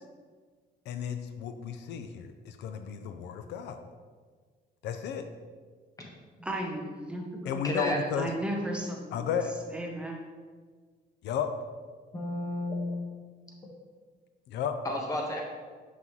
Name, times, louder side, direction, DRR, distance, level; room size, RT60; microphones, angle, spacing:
voice 1, 0.9-3.8 4.8-5.2 7.5-8.3 9.1-9.5 11.2-11.5 14.5-14.7, left 8 dB, 80° left, 8 dB, 0.5 m, -33 dB
voice 2, 6.4-7.6 8.2-9.3 9.7-10.2, right 1 dB, 5° right, 0 dB, 0.8 m, -35 dB
voice 3, 7.6-8.0 12.1-13.0 14.8-15.4, left 1 dB, 20° left, -1 dB, 1.1 m, -32 dB
6.1 x 5.5 x 3.0 m, 1.5 s
cardioid pair, 125°, 18 cm